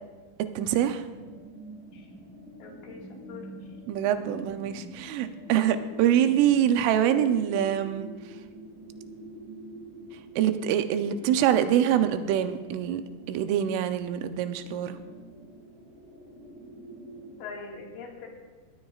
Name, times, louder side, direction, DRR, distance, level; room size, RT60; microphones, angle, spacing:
voice 1, 0.6-1.0 3.9-8.1 10.4-13.0 13.3-15.0, right 10 dB, 85° right, 9 dB, 3.2 m, -25 dB
sound 1, 0.8-17.4, right 1 dB, 45° right, 1.4 m, -46 dB
voice 2, 2.6-3.5 17.4-18.3, left 5 dB, 80° left, -1 dB, 4.3 m, -42 dB
19.0 x 18.0 x 2.4 m, 1.4 s
omnidirectional pair, 5.5 m